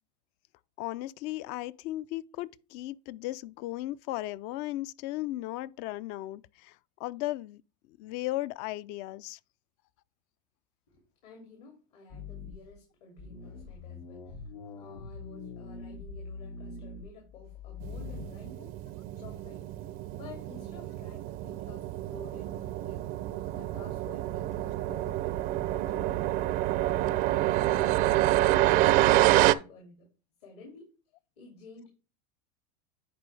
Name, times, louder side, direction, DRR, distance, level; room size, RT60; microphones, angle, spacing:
voice 1, 0.8-7.6 7.9-9.4, left 16 dB, 55° left, 0.4 m, -36 dB
voice 2, 10.9-14.4 14.7-18.9 19.1-19.7 20.2-28.0 28.3-30.1 30.4-30.9 31.4-31.9, left 2 dB, 70° left, 2.5 m, -51 dB
sound 1, 12.1-12.7 13.2-18.3, left 4 dB, 85° left, 1.7 m, -43 dB
sound 2, 17.8-29.5, right 15 dB, 45° right, 0.4 m, -27 dB
10.0 x 4.5 x 3.2 m
supercardioid pair, 115°, 20 cm